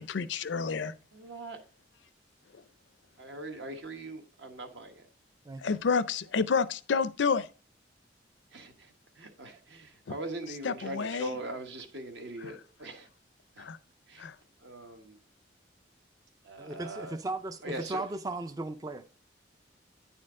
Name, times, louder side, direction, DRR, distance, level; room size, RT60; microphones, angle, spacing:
voice 1, 0.0-0.9 2.5-2.6 5.6-7.5 10.6-11.3 13.6-13.8 14.2-14.4, left 5 dB, 75° left, 0.5 m, -29 dB
voice 2, 1.1-1.6 3.2-5.1 8.5-13.1 13.5-13.7 14.1-14.3 14.6-15.2 16.4-17.2 17.6-18.0, right 2 dB, 70° right, 1.2 m, -41 dB
voice 3, 16.6-17.6 17.9-19.0, right 2 dB, 20° right, 0.3 m, -36 dB
9.4 x 4.3 x 3.6 m
head